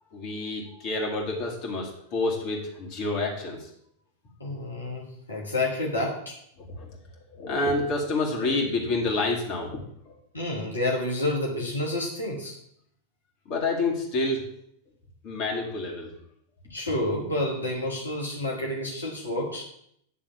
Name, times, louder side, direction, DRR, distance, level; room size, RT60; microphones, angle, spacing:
voice 1, 0.1-3.7 6.7-7.0 7.3-10.2 13.5-14.4 15.2-16.1, left 2 dB, 40° left, -1 dB, 2.2 m, -28 dB
voice 2, 4.4-6.4 10.3-12.6 16.7-19.6, left 1 dB, 75° left, -1 dB, 1.3 m, -29 dB
9.6 x 3.5 x 6.9 m, 0.71 s
figure-of-eight pair, 90°, 0 cm